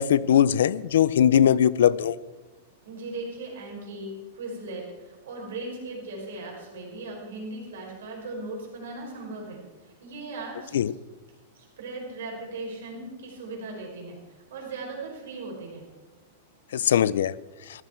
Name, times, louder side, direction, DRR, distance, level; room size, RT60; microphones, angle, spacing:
voice 1, 0.0-2.1 10.7-10.9 16.7-17.3, left 9 dB, 80° left, 20 dB, 0.5 m, -20 dB
voice 2, 2.8-10.8 11.5-14.2 14.5-15.9, right 2 dB, 75° right, 0 dB, 5.4 m, -38 dB
15.0 x 13.0 x 4.5 m, 1.2 s
supercardioid pair, 170°, 0 cm